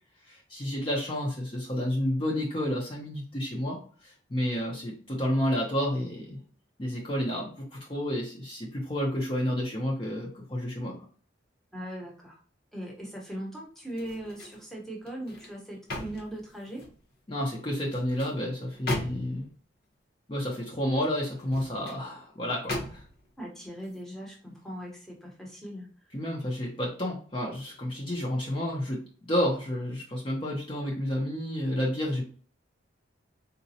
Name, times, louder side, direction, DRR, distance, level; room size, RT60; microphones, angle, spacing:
voice 1, 0.3-6.4 6.8-11.0 17.3-19.5 20.3-23.0 26.1-32.2, equal, 30° left, -2 dB, 0.6 m, -30 dB
voice 2, 11.7-12.4 12.7-16.8 23.4-25.9, right 1 dB, ahead, -2 dB, 0.8 m, -39 dB
sound 1, 13.9-14.6 15.1-17.0 17.8-19.5 21.3-22.0 22.7-23.3 23.8-24.0, left 1 dB, 55° left, 0.9 m, -38 dB
3.9 x 2.2 x 2.7 m, 0.43 s
head